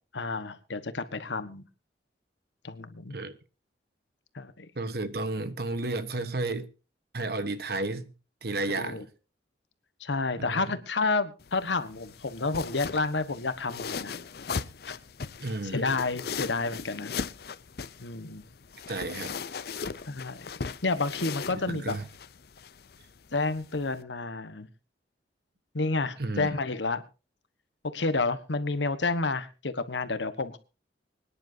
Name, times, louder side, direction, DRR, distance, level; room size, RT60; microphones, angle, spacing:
voice 1, 0.1-1.6 2.6-3.2 4.3-4.7 8.7-9.0 10.0-14.1 14.9-15.0 15.6-17.1 18.0-18.4 20.1-20.5 20.8-21.9 23.3-24.7 25.7-27.0 27.9-30.6, left 3 dB, 75° left, 1.3 m, -30 dB
voice 2, 4.7-6.7 7.1-8.1 8.4-9.1 10.4-10.8 15.4-15.9 18.9-19.5 21.7-22.1 26.2-26.5, right 2 dB, 55° right, 1.2 m, -32 dB
sound 1, 11.4-24.0, left 5 dB, 55° left, 0.6 m, -39 dB
25.0 x 10.5 x 2.8 m
head